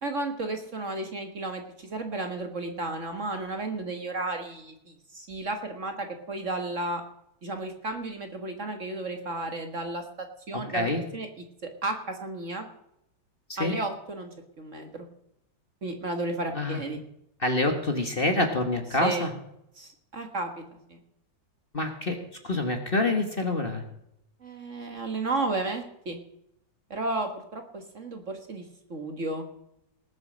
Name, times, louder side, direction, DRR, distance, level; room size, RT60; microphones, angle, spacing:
voice 1, 0.0-7.0 7.4-10.0 10.5-10.9 11.1-11.3 11.6-12.7 13.6-14.3 14.6-15.1 15.8-17.0 19.0-19.3 19.8-20.6 20.9-21.0 24.4-26.2 26.9-28.6 28.9-29.5, right 2 dB, 45° right, 5 dB, 1.7 m, -33 dB
voice 2, 17.4-19.3 21.7-22.2 22.4-23.8, left 2 dB, 30° left, 4 dB, 1.6 m, -26 dB
19.5 x 7.5 x 6.4 m, 0.79 s
omnidirectional pair, 2.0 m